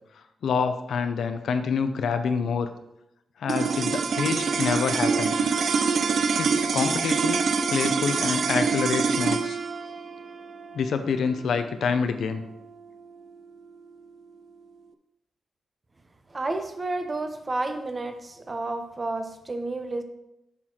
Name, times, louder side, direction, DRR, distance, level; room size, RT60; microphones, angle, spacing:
voice 1, 0.4-2.7 3.4-5.4 6.4-7.4 7.7-9.6 10.7-12.4, left 6 dB, 80° left, 9 dB, 0.7 m, -27 dB
sound 1, 3.5-13.9, right 5 dB, 55° right, 0.5 m, -26 dB
voice 2, 16.3-20.0, right 2 dB, 25° right, 7 dB, 0.8 m, -31 dB
8.8 x 6.0 x 4.4 m, 0.85 s
wide cardioid pair, 155°, 0 cm